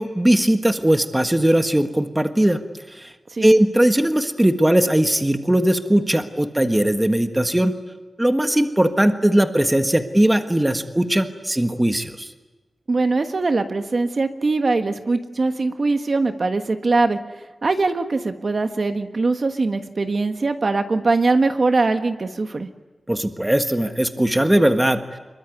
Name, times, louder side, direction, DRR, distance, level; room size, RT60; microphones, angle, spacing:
voice 1, 0.0-2.6 2.9-3.1 3.4-7.7 8.2-12.3 23.1-25.0, right 1 dB, 10° right, 7 dB, 1.5 m, -19 dB
voice 2, 12.9-17.2 17.6-22.7, right 3 dB, 50° right, 7 dB, 1.4 m, -21 dB
25.5 x 22.5 x 9.6 m, 1.2 s
wide cardioid pair, 120°, 0 cm